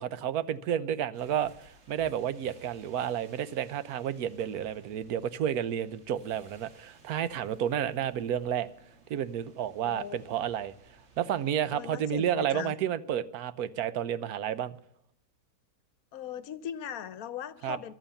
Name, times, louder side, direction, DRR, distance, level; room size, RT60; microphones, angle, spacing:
voice 1, 0.0-8.7 9.1-10.7 11.2-14.8 17.6-17.8, right 9 dB, 75° right, 1.2 m, -31 dB
sound 1, 1.1-12.1, right 3 dB, 50° right, 1.7 m, -58 dB
voice 2, 9.8-10.2 11.7-12.7 16.1-17.9, left 9 dB, 70° left, 1.2 m, -39 dB
14.5 x 11.5 x 7.1 m
omnidirectional pair, 1.6 m